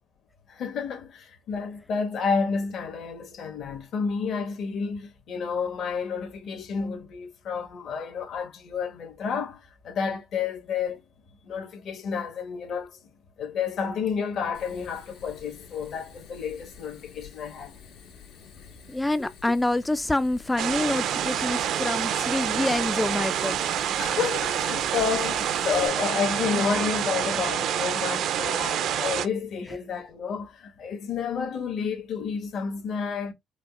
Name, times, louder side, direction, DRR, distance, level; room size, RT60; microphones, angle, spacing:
voice 1, 0.5-11.0 11.4-12.9 13.4-17.8 24.0-33.3, left 6 dB, 65° left, 1.5 m, -30 dB
Fire, 14.5-25.9, left 6 dB, 85° left, 1.5 m, -49 dB
voice 2, 18.9-23.6, left 2 dB, 15° left, 0.3 m, -26 dB
sound 1, 20.6-29.3, right 9 dB, 75° right, 0.5 m, -27 dB
5.1 x 2.6 x 2.4 m
supercardioid pair, 80°, 0 cm